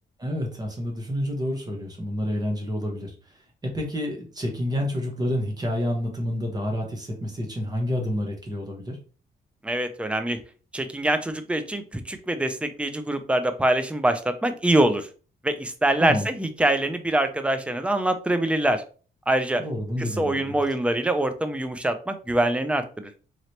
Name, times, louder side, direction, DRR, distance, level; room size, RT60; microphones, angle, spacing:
voice 1, 0.2-3.1 3.6-9.0 16.0-16.3 19.6-20.6, equal, 25° right, 1 dB, 1.1 m, -29 dB
voice 2, 9.6-10.4 10.7-15.1 15.4-18.8 19.3-19.6 20.0-23.1, right 1 dB, 5° right, 9 dB, 0.5 m, -24 dB
3.8 x 3.2 x 2.9 m, 0.37 s
cardioid pair, 125°, 17 cm